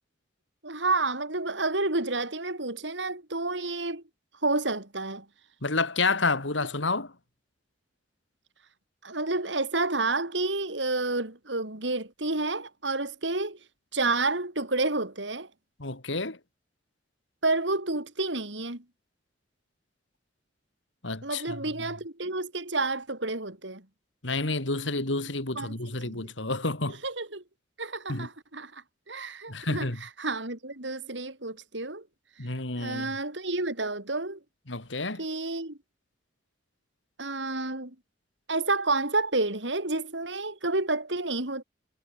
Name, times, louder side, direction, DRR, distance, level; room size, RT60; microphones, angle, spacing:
voice 1, 0.6-4.0 4.4-5.2 9.0-13.6 13.9-15.5 17.4-18.8 21.2-23.8 25.5-25.7 26.0-26.3 27.0-27.4 27.8-32.0 32.8-34.4 35.2-35.8 37.2-37.9 38.5-41.6, right 2 dB, 75° right, 5.0 m, -30 dB
voice 2, 5.6-7.1 15.8-16.4 21.0-21.6 24.2-27.0 28.1-28.3 29.5-30.0 32.4-33.1 34.7-35.2, left 3 dB, 90° left, 3.5 m, -29 dB
head